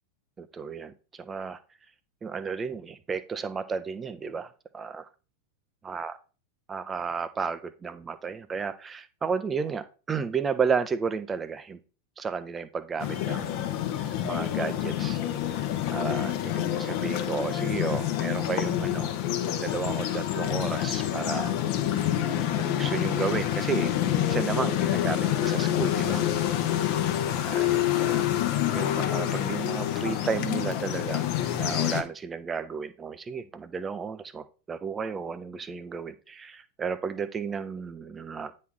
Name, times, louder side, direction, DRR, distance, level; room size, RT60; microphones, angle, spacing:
voice 1, 0.4-1.6 2.2-5.1 5.8-6.2 6.7-11.8 12.2-15.2 15.5-15.6 15.9-19.1 19.6-21.5 22.5-23.9 24.3-26.2 27.4-28.2 28.7-31.2 31.5-38.7, right 5 dB, 20° right, 13 dB, 0.7 m, -33 dB
sound 1, 13.0-32.0, left 11 dB, 45° left, 0.9 m, -27 dB
9.4 x 4.3 x 3.6 m, 0.35 s
figure-of-eight pair, 90°, 0 cm